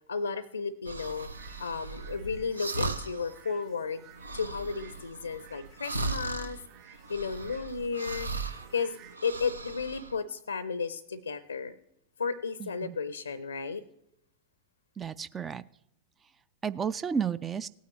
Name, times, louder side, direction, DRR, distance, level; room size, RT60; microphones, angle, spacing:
voice 1, 0.1-1.3 1.6-4.0 4.3-6.6 6.8-8.3 8.7-11.7 12.2-13.8, left 5 dB, 75° left, 16 dB, 0.5 m, -33 dB
sound 1, 0.9-3.4 3.7-3.8 4.1-8.7 9.0-10.2, right 3 dB, 80° right, 0.7 m, -37 dB
sound 2, 1.1-9.2, right 10 dB, 45° right, 4.5 m, -56 dB
voice 2, 12.6-13.0 15.0-15.6 16.6-17.7, right 7 dB, 20° right, 17 dB, 0.3 m, -32 dB
17.5 x 9.3 x 3.1 m, 0.78 s
figure-of-eight pair, 90°, 0 cm